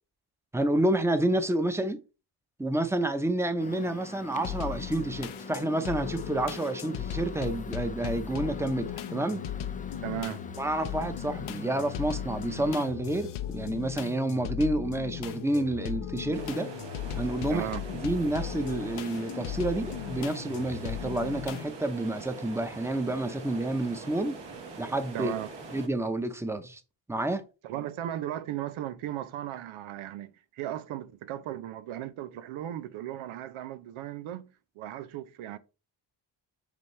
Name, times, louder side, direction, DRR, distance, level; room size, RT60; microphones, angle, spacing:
voice 1, 0.5-2.0 2.6-9.4 10.6-16.7 17.1-24.4 24.8-25.3 25.7-26.8 27.1-27.4, right 1 dB, 5° right, 0.9 m, -29 dB
Microwave oven, 3.6-12.8, left 4 dB, 20° left, 0.4 m, -44 dB
sound 1, 4.4-21.7, left 10 dB, 85° left, 0.9 m, -37 dB
voice 2, 10.0-10.4 17.5-17.8 25.1-25.5 27.6-35.6, right 12 dB, 80° right, 0.7 m, -36 dB
sound 2, 16.3-25.9, right 4 dB, 60° right, 1.8 m, -43 dB
8.3 x 3.4 x 3.3 m
cardioid pair, 75°, 48 cm